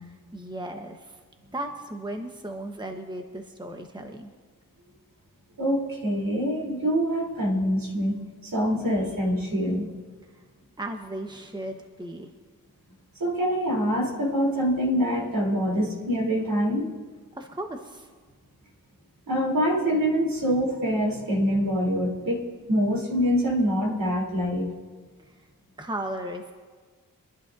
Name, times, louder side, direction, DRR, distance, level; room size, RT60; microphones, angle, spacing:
voice 1, 0.3-1.2 1.5-4.3 10.2-10.4 10.8-12.3 17.3-18.1 25.2-25.5 25.8-26.5, right 1 dB, 10° right, 4 dB, 1.2 m, -36 dB
voice 2, 5.6-9.9 13.2-16.9 19.3-24.7, equal, 70° right, -3 dB, 3.7 m, -25 dB
25.5 x 11.0 x 2.7 m, 1.5 s
cardioid pair, 55°, 35 cm